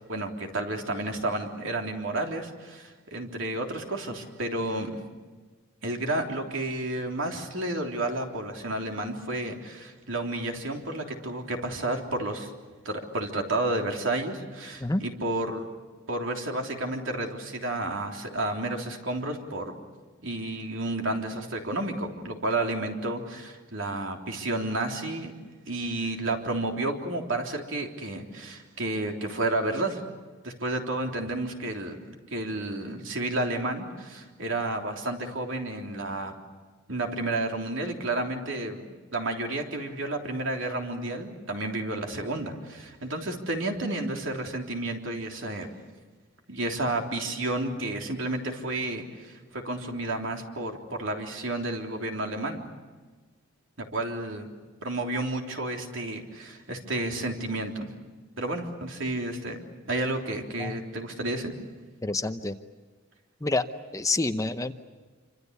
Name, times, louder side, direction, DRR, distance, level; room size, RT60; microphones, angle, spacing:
voice 1, 0.1-5.0 5.8-12.5 12.9-15.6 16.1-19.8 20.2-25.3 25.7-30.0 30.4-32.0 32.3-36.3 36.9-45.7 46.5-52.6 53.8-54.5 54.8-57.9 58.4-59.6 59.9-61.5, right 2 dB, 65° right, 2 dB, 3.5 m, -31 dB
voice 2, 62.0-62.6 63.4-63.7 63.9-64.7, left 2 dB, 15° left, 9 dB, 0.8 m, -27 dB
27.5 x 26.0 x 8.2 m, 1.4 s
head